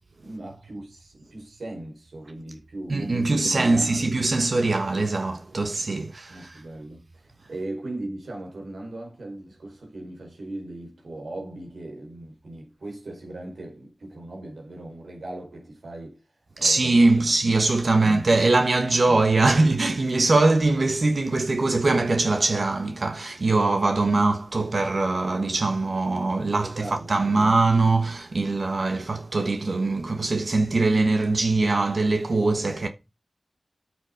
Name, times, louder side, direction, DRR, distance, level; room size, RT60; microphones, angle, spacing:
voice 1, 0.2-4.1 5.9-16.2 16.5-16.9 17.9-18.3 18.9-19.0 24.6-24.7 26.6-27.3, right 1 dB, 85° right, 4.7 m, -38 dB
voice 2, 2.9-6.6 16.6-32.9, right 3 dB, 65° right, 1.3 m, -22 dB
8.6 x 7.3 x 5.2 m
cardioid pair, 45°, 0 cm